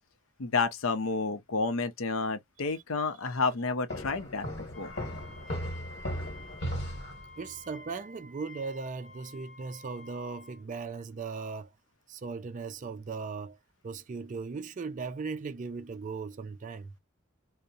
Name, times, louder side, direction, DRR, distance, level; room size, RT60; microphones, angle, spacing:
voice 1, 0.4-4.9, left 4 dB, 70° left, 0.6 m, -30 dB
sound 1, 3.9-7.6, equal, 50° left, 1.1 m, -37 dB
Wind instrument woodwind instrument, 4.7-10.6, left 3 dB, 5° left, 0.7 m, -51 dB
voice 2, 7.4-11.7 12.1-13.6 13.8-17.0, right 4 dB, 35° right, 0.3 m, -38 dB
2.7 x 2.0 x 2.3 m
head